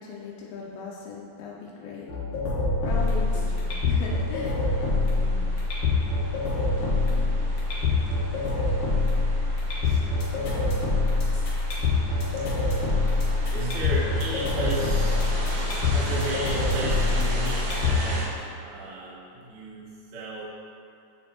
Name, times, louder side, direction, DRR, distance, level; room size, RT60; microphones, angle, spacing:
voice 1, 0.0-2.1 2.8-4.6 5.1-5.5 6.8-7.4, left 4 dB, 85° left, -3 dB, 2.3 m, -38 dB
sound 1, 2.1-18.1, left 3 dB, 60° left, 1.6 m, -25 dB
sound 2, 2.9-18.3, right 1 dB, 70° right, 2.2 m, -39 dB
voice 2, 9.8-10.8 12.4-12.5 12.7-15.2 15.8-18.3 18.6-20.4, right 1 dB, 90° right, -7 dB, 0.9 m, -35 dB
7.8 x 5.1 x 2.8 m, 2.4 s
omnidirectional pair, 4.1 m